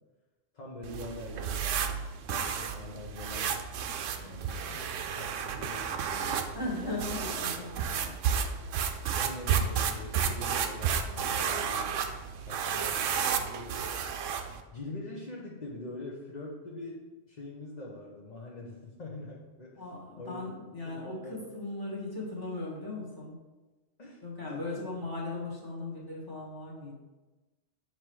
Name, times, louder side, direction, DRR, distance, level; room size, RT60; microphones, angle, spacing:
voice 1, 0.5-3.6 4.2-7.0 9.1-12.1 12.5-13.9 14.7-19.9 20.2-20.5 20.8-21.3 24.0-24.9, left 2 dB, 40° left, -3 dB, 0.8 m, -44 dB
sound 1, 0.8-14.6, right 7 dB, 90° right, 0.9 m, -32 dB
voice 2, 6.5-8.3 19.8-23.4 24.2-26.9, left 2 dB, 20° left, -5 dB, 1.5 m, -38 dB
7.4 x 3.0 x 4.6 m, 1.2 s
omnidirectional pair, 1.2 m